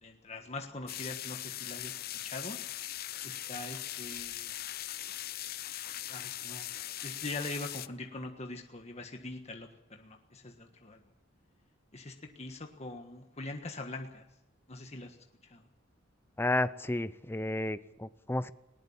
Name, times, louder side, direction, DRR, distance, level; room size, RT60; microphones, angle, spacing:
voice 1, 0.0-2.6 3.2-4.5 6.0-6.7 7.0-11.0 11.9-14.2 14.7-15.2 15.4-15.6, left 2 dB, 35° left, 4 dB, 1.5 m, -42 dB
sound 1, 0.9-7.9, left 13 dB, 50° left, 0.7 m, -40 dB
voice 2, 16.4-18.5, left 1 dB, 10° left, 15 dB, 0.6 m, -32 dB
20.0 x 19.0 x 7.2 m, 0.88 s
head